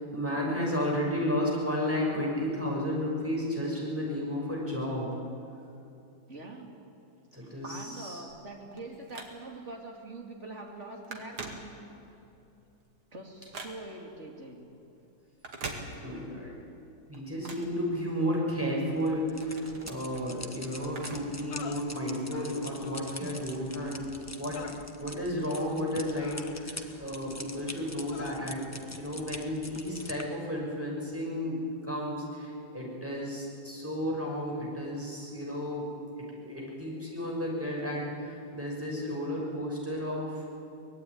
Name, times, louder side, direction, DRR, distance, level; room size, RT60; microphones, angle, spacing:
voice 1, 0.0-5.1 7.3-8.2 16.0-16.5 17.1-24.1 24.4-28.6 29.0-35.9 36.4-40.5, equal, 5° right, -3 dB, 6.2 m, -33 dB
voice 2, 6.3-6.8 7.3-11.8 13.1-14.7, right 2 dB, 30° right, 1 dB, 3.1 m, -44 dB
Telephone, 8.3-9.7 10.2-10.4 10.7-12.2 12.6-14.1 15.3-16.4 16.7-18.5 18.9-21.5 21.7-21.8 22.7-22.8, right 3 dB, 75° right, 3.1 m, -44 dB
sound 1, 19.0-30.2, left 1 dB, 10° left, 1.0 m, -45 dB
sound 2, 19.6-19.7 21.5-21.8 22.8-23.1 24.6-24.9 26.1-26.9 28.1-28.4, left 8 dB, 90° left, 2.0 m, -45 dB
24.0 x 19.5 x 9.6 m, 2.7 s
omnidirectional pair, 2.4 m